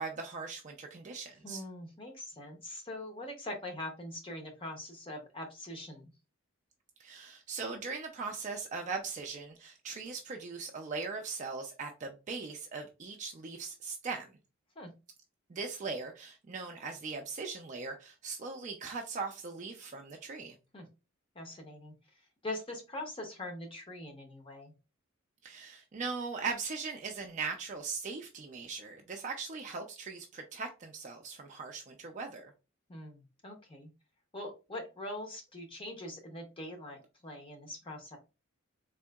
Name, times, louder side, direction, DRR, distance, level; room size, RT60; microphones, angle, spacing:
voice 1, 0.0-1.6 7.0-14.3 15.5-20.6 25.4-32.5, right 4 dB, 35° right, 0.3 m, -39 dB
voice 2, 1.4-6.1 14.8-14.9 20.7-20.9 21.3-24.7 32.9-33.9 34.3-38.2, left 1 dB, 25° left, 0.6 m, -43 dB
3.6 x 2.6 x 2.2 m
head